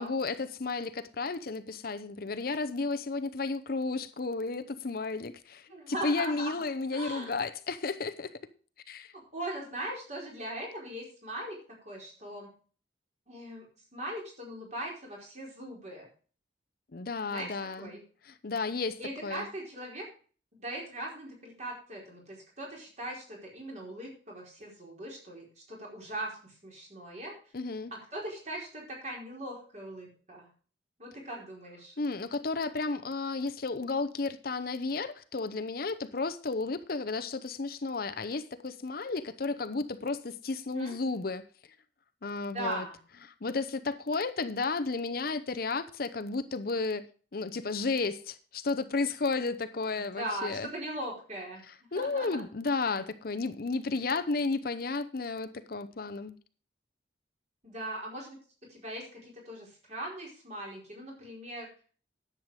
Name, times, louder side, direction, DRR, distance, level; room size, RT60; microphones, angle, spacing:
voice 1, 0.0-8.3 8.9-9.1 16.9-17.9 18.3-19.5 27.5-27.9 32.0-41.5 42.2-42.8 43.4-47.1 47.3-50.7 51.9-56.4, left 3 dB, 55° left, 0.7 m, -33 dB
voice 2, 5.7-6.6 6.9-7.3 9.1-11.6 11.8-12.5 13.3-13.7 13.9-16.1 17.3-18.0 19.0-20.0 20.5-27.4 28.1-30.5 31.0-31.9 40.7-41.0 42.5-43.0 50.0-51.6 51.9-52.4 57.6-58.4 58.7-61.7, right 1 dB, 40° right, 4.8 m, -40 dB
10.5 x 7.8 x 4.9 m
head